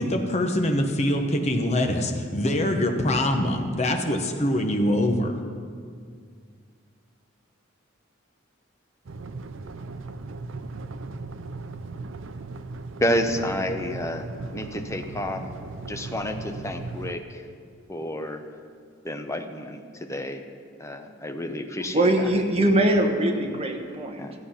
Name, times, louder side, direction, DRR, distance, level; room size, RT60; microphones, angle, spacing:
voice 1, 0.0-5.3, left 1 dB, 35° left, 4 dB, 1.1 m, -24 dB
sound 1, 9.1-17.1, right 3 dB, 75° right, 0.6 m, -37 dB
voice 2, 13.0-15.4 15.9-17.4 17.9-18.4 19.0-20.4 20.8-22.3 24.2-24.3, left 1 dB, 15° left, 6 dB, 0.7 m, -30 dB
voice 3, 21.9-24.2, right 1 dB, 30° right, 4 dB, 1.1 m, -22 dB
14.0 x 8.4 x 5.7 m, 2.1 s
head